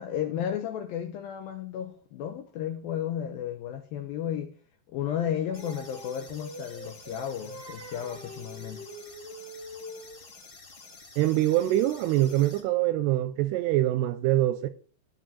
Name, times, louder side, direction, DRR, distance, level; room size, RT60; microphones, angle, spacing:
voice 1, 0.0-4.5 4.9-8.8, left 9 dB, 80° left, 2.2 m, -33 dB
Singing, 5.0-10.3, right 1 dB, 30° right, 0.5 m, -44 dB
sound 1, 5.5-12.6, left 4 dB, 30° left, 2.7 m, -50 dB
voice 2, 11.2-14.7, right 14 dB, 80° right, 2.4 m, -24 dB
12.0 x 4.4 x 7.5 m
omnidirectional pair, 5.1 m